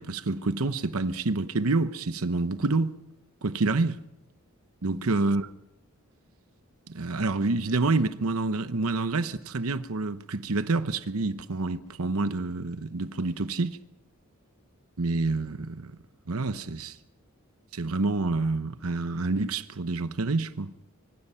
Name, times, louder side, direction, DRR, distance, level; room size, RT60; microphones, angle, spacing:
voice 1, 0.0-2.9 3.4-4.0 4.8-5.5 6.9-13.8 15.0-16.0 16.3-17.0 17.7-20.7, right 3 dB, 80° right, 0.9 m, -28 dB
24.5 x 24.0 x 5.7 m
head